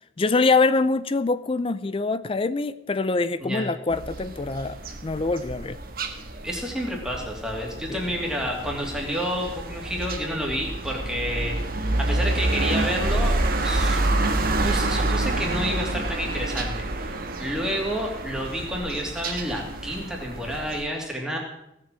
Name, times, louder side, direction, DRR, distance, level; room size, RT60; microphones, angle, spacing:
voice 1, 0.2-5.8 7.9-8.0, left 3 dB, 25° left, 15 dB, 0.4 m, -24 dB
sound 1, 3.9-20.8, right 2 dB, 45° right, 1.4 m, -28 dB
voice 2, 6.4-11.6 12.0-13.4 13.6-17.1 17.4-21.4, equal, 5° right, -1 dB, 2.7 m, -30 dB
17.0 x 7.6 x 7.4 m, 0.83 s
head